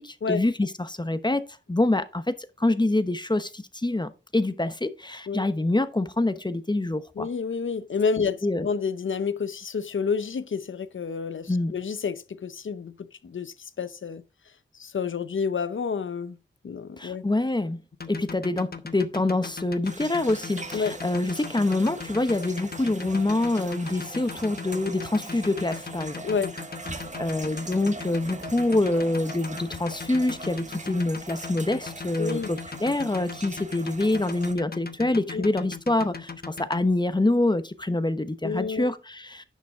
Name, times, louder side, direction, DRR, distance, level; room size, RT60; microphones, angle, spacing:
voice 1, 0.0-1.4 1.7-7.3 8.4-8.7 11.5-11.7 17.0-17.8 18.1-26.2 27.2-39.4, left 2 dB, 20° left, 1.0 m, -26 dB
voice 2, 7.2-14.2 14.7-16.4 16.6-17.2 20.7-20.9 26.2-26.5 26.9-27.0 32.2-32.5 35.3-35.5 38.4-38.9, left 5 dB, 75° left, 0.7 m, -29 dB
sound 1, 17.9-36.8, left 5 dB, 50° left, 0.9 m, -38 dB
sound 2, 19.8-34.5, right 3 dB, 35° right, 1.3 m, -41 dB
10.5 x 6.2 x 3.6 m
wide cardioid pair, 65°, 20 cm